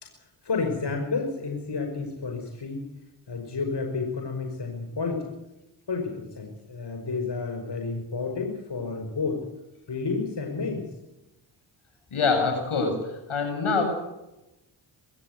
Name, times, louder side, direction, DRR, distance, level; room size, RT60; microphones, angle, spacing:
voice 1, 0.0-2.8 3.3-5.3 5.9-9.5 9.9-10.9, left 4 dB, 55° left, 4 dB, 5.5 m, -31 dB
voice 2, 12.1-13.8, left 4 dB, 75° left, 5 dB, 7.9 m, -25 dB
24.0 x 15.5 x 8.2 m, 0.93 s
cardioid pair, 45°, 49 cm